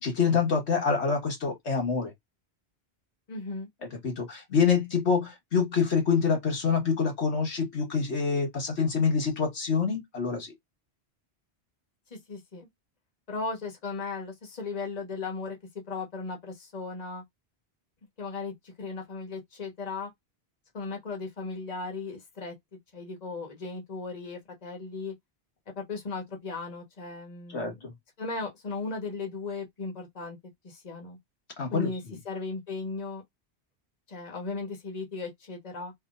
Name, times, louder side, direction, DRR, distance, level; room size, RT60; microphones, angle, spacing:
voice 1, 0.0-2.1 4.0-10.5 27.5-27.7 31.6-31.9, left 5 dB, 80° left, 1.6 m, -26 dB
voice 2, 3.3-3.7 12.1-12.7 13.3-15.6 15.9-17.2 18.2-20.1 20.7-22.5 22.9-25.1 25.8-30.4 30.6-31.2 31.7-33.2 34.1-35.9, left 4 dB, 40° left, 1.3 m, -36 dB
3.5 x 3.1 x 2.4 m
omnidirectional pair, 1.1 m